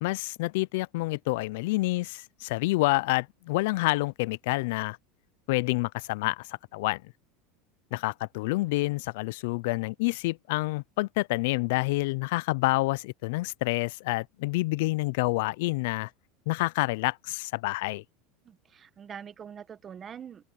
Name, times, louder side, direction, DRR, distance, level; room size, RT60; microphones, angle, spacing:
voice 1, 0.0-5.0 5.5-7.0 7.9-16.1 16.5-18.0, left 22 dB, 70° left, 0.4 m, -28 dB
voice 2, 18.4-20.4, right 8 dB, 25° right, 1.2 m, -44 dB
open air
supercardioid pair, 140°, 0 cm